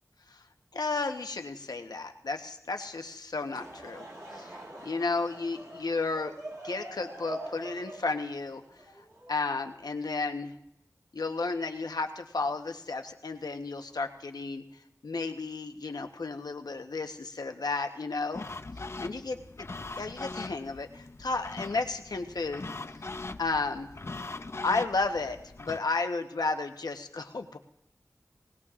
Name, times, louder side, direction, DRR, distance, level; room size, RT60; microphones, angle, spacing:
voice 1, 0.7-4.1 4.3-4.6 4.8-6.3 6.6-8.6 9.3-10.5 11.1-14.6 15.0-18.5 19.0-19.4 20.0-22.6 23.4-23.9 24.6-27.6, left 3 dB, 85° left, 6 dB, 0.9 m, -33 dB
Laughter / Crowd, 3.3-9.8, right 1 dB, 50° right, 4.0 m, -44 dB
sound 1, 18.3-25.8, left 3 dB, 40° left, 0.5 m, -41 dB
20.0 x 19.0 x 2.5 m, 0.78 s
wide cardioid pair, 65°, 7 cm